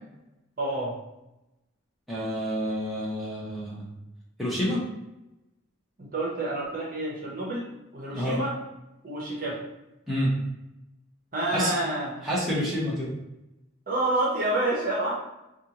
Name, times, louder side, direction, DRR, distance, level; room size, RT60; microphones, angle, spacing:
voice 1, 0.6-0.9 6.0-7.7 7.9-8.5 9.0-9.6 11.3-12.2 13.9-15.1, right 2 dB, 40° right, -4 dB, 0.8 m, -28 dB
voice 2, 2.1-3.9 4.4-4.9 8.1-8.4 10.1-10.3 11.5-11.7 12.2-13.1, equal, ahead, -8 dB, 0.8 m, -28 dB
4.3 x 2.4 x 2.9 m, 0.92 s
head